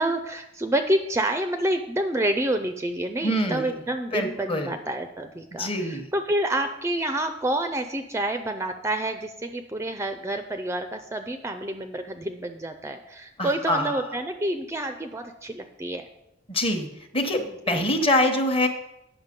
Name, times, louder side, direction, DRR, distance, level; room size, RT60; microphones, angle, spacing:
voice 1, 0.0-16.1 17.7-17.8, right 1 dB, 15° right, 7 dB, 0.4 m, -28 dB
voice 2, 3.2-3.7 4.1-4.7 5.5-6.0 13.4-13.9 16.5-16.9 17.1-18.7, left 1 dB, 30° left, 5 dB, 1.0 m, -24 dB
8.9 x 6.1 x 5.2 m, 0.88 s
head